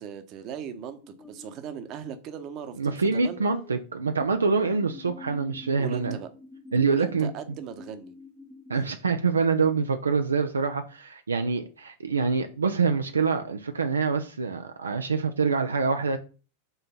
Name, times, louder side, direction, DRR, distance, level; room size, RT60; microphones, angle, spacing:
voice 1, 0.0-3.4 5.8-6.3 6.9-8.1, right 7 dB, 40° right, 1.0 m, -38 dB
sound 1, 1.0-1.6 3.3-4.3 4.7-8.9, left 2 dB, 10° left, 0.6 m, -46 dB
voice 2, 2.8-6.2 6.7-7.3 8.7-16.2, right 4 dB, 75° right, 0.5 m, -25 dB
5.6 x 3.8 x 5.7 m
figure-of-eight pair, 90°, 0 cm